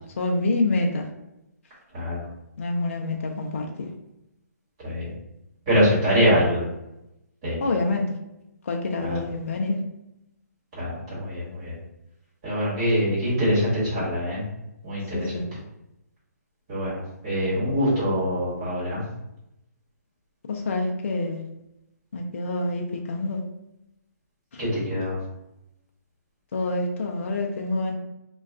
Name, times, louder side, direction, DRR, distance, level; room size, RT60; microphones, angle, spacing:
voice 1, 0.2-1.1 2.6-3.9 7.6-8.0 8.6-9.8 15.1-15.4 20.5-21.4 22.1-23.4 24.5-24.6 26.5-28.0, left 2 dB, 45° left, 1 dB, 0.4 m, -27 dB
voice 2, 5.7-6.6 7.4-7.6 9.0-9.2 10.8-11.7 12.4-14.4 14.8-15.3 16.7-19.0 24.6-25.2, equal, 20° right, -10 dB, 1.2 m, -24 dB
2.3 x 2.2 x 3.5 m, 0.89 s
hypercardioid pair, 175°, 9 cm